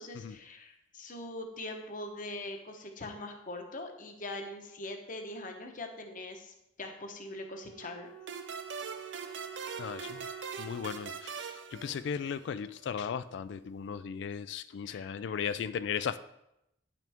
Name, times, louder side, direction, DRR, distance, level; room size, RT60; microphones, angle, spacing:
voice 1, 0.0-8.1 14.8-15.4, left 2 dB, 45° left, 4 dB, 1.0 m, -42 dB
Wind instrument woodwind instrument, 7.2-12.2, right 8 dB, 10° left, 1.0 m, -48 dB
sound 1, 8.3-12.6, right 5 dB, 70° right, 0.6 m, -42 dB
voice 2, 9.8-10.3 10.6-16.2, left 7 dB, 65° left, 13 dB, 0.3 m, -36 dB
9.1 x 5.9 x 3.5 m, 0.84 s
head